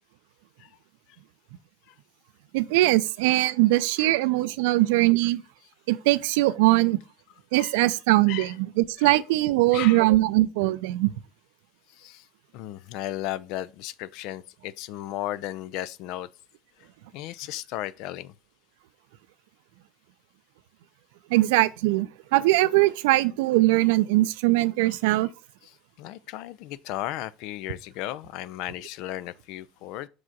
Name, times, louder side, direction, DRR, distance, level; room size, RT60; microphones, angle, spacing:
voice 1, 2.5-5.4 5.9-7.0 7.5-11.1 21.3-25.3, right 18 dB, 70° right, 0.4 m, -21 dB
voice 2, 9.7-10.1 11.9-12.3 12.5-16.3 17.1-18.3 24.9-25.0 25.6-30.1, left 14 dB, 60° left, 0.4 m, -35 dB
6.1 x 4.9 x 3.8 m
hypercardioid pair, 70°, 0 cm